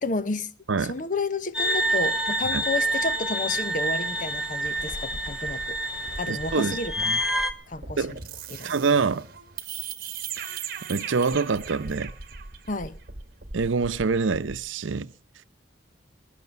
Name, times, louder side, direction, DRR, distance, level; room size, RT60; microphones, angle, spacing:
voice 1, 0.0-0.5 0.8-5.8 6.2-7.1 7.7-8.2 8.5-8.7 12.7-13.0, left 3 dB, 45° left, 0.8 m, -31 dB
sound 1, 1.5-7.5, right 1 dB, 5° right, 1.0 m, -27 dB
sound 2, 1.6-9.0 9.3-9.6, left 1 dB, 75° left, 5.4 m, -49 dB
sound 3, 4.6-14.7, right 6 dB, 50° right, 1.4 m, -39 dB
voice 2, 6.3-7.2 8.0-8.2 8.6-9.3 10.4-10.6 10.9-12.1 13.5-15.1, right 4 dB, 90° right, 0.7 m, -26 dB
21.0 x 10.0 x 6.9 m
head